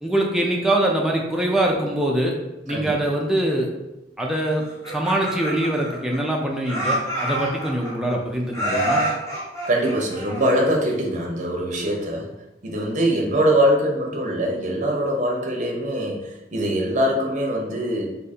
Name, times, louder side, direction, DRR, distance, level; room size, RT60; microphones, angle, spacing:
voice 1, 0.0-2.3 2.6-3.7 4.2-9.0, right 1 dB, 5° right, -1 dB, 0.5 m, -23 dB
Laughter, 4.6-6.3 6.6-8.1 8.5-10.8, right 1 dB, 15° left, 0.9 m, -27 dB
voice 2, 9.7-12.3 12.6-18.1, equal, 40° right, -1 dB, 0.7 m, -22 dB
2.7 x 2.5 x 4.1 m, 0.96 s
head